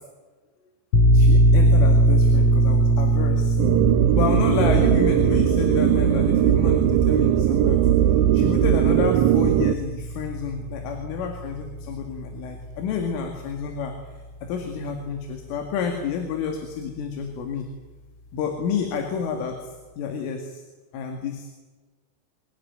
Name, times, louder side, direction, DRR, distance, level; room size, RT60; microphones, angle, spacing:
sound 1, 0.9-12.2, right 2 dB, 45° left, 2.3 m, -21 dB
voice 1, 1.1-3.6 4.1-7.8 8.3-13.9 14.4-17.6 18.3-19.7 20.0-20.6 20.9-21.5, left 6 dB, 75° left, 3 dB, 4.7 m, -29 dB
sound 2, 3.6-9.8, right 11 dB, 75° right, 2.9 m, -19 dB
25.0 x 17.0 x 9.4 m, 1.3 s
omnidirectional pair, 5.8 m